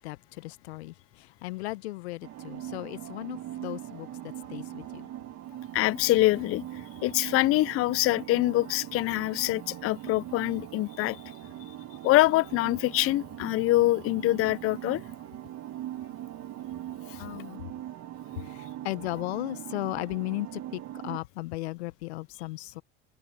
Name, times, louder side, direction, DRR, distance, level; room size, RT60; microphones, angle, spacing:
voice 1, 0.0-5.1 17.2-17.7 18.4-22.8, left 19 dB, 85° left, 1.1 m, -36 dB
sound 1, 2.2-21.2, right 13 dB, 55° right, 2.0 m, -41 dB
voice 2, 5.7-6.6 7.0-11.2 12.0-15.0, left 18 dB, 45° left, 0.5 m, -24 dB
hypercardioid pair, 75°, 31 cm